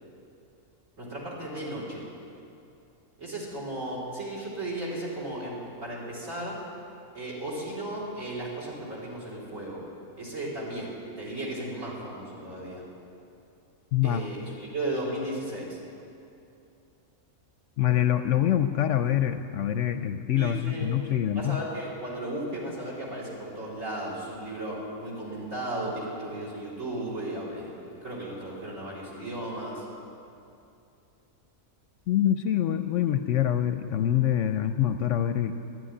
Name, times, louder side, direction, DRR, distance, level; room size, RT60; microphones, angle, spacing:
voice 1, 1.0-2.0 3.2-6.6 7.1-9.8 10.2-12.8 14.0-15.8 20.4-20.9 21.4-29.8, right 1 dB, 65° right, -5 dB, 4.0 m, -35 dB
voice 2, 13.9-14.2 17.8-21.6 32.1-35.5, left 11 dB, 70° left, 9 dB, 0.8 m, -25 dB
12.0 x 11.0 x 9.8 m, 2.7 s
omnidirectional pair, 1.5 m